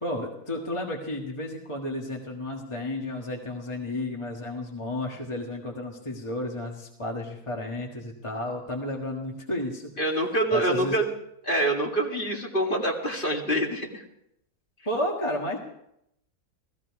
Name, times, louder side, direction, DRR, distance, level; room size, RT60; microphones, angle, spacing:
voice 1, 0.0-11.0 14.8-15.6, left 1 dB, 20° left, 0 dB, 1.6 m, -32 dB
voice 2, 10.0-11.1 11.4-14.0, right 1 dB, 35° left, 0 dB, 2.3 m, -26 dB
16.5 x 15.5 x 4.8 m, 0.78 s
omnidirectional pair, 1.5 m